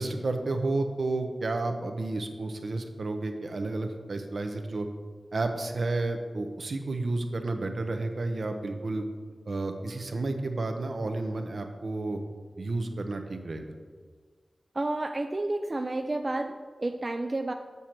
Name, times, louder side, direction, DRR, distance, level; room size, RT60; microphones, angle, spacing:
voice 1, 0.0-4.9 5.3-9.1 9.5-12.2 12.6-13.6, right 2 dB, 70° right, 5 dB, 0.7 m, -31 dB
voice 2, 14.7-17.5, right 2 dB, 40° right, 5 dB, 0.4 m, -30 dB
6.8 x 6.1 x 4.4 m, 1.5 s
wide cardioid pair, 65°, 0 cm